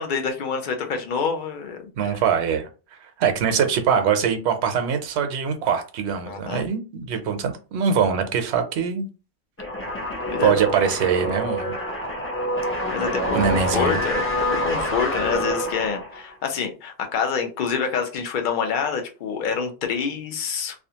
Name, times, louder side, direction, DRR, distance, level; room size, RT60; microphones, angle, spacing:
voice 1, 0.0-2.2 6.3-6.6 10.3-10.6 12.9-14.2 14.5-20.7, left 6 dB, 55° left, 4 dB, 0.7 m, -27 dB
voice 2, 2.0-2.7 3.0-9.1 10.4-11.8 13.3-14.0, right 7 dB, 75° right, 7 dB, 0.9 m, -23 dB
sound 1, 9.6-16.3, equal, 15° left, 0.5 m, -26 dB
2.4 x 2.3 x 2.8 m, 0.33 s
omnidirectional pair, 1.2 m